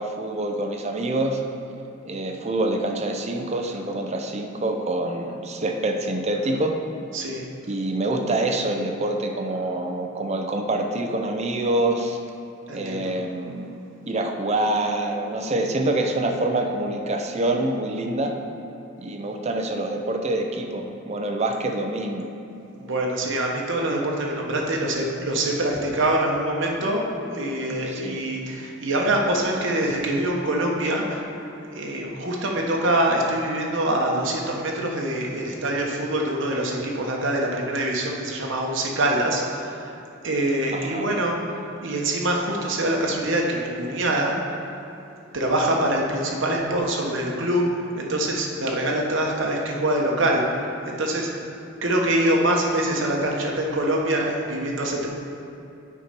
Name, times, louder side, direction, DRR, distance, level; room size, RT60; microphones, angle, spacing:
voice 1, 0.0-1.4 2.0-6.8 7.7-12.2 12.7-13.7 14.1-18.3 19.0-22.3 27.8-28.2 40.7-41.1, right 2 dB, 35° right, 4 dB, 0.6 m, -26 dB
voice 2, 7.1-7.4 12.7-13.0 22.8-31.2 31.7-39.9 40.2-44.3 45.3-47.7 48.0-51.3 51.8-55.1, right 1 dB, 65° right, -1 dB, 1.1 m, -24 dB
8.4 x 4.3 x 5.2 m, 2.8 s
head